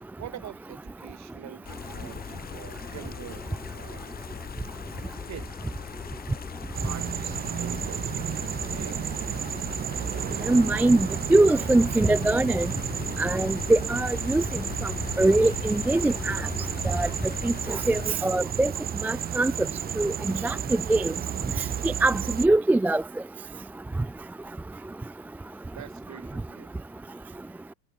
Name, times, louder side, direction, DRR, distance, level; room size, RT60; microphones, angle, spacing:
voice 1, 0.2-4.1 5.3-5.7 6.8-9.0 25.7-26.7, right 12 dB, 40° right, 7.9 m, -44 dB
sound 1, 1.6-18.1, left 7 dB, 20° left, 1.5 m, -38 dB
sound 2, 6.7-22.5, right 9 dB, 20° right, 0.7 m, -32 dB
voice 2, 10.5-12.7 13.2-14.4 14.8-14.9 15.2-16.4 16.9-17.1 17.4-18.7 19.0-19.5 20.0-20.1 20.4-21.1 21.8-23.0, right 2 dB, 5° right, 0.3 m, -22 dB
cardioid pair, 155°, 42 cm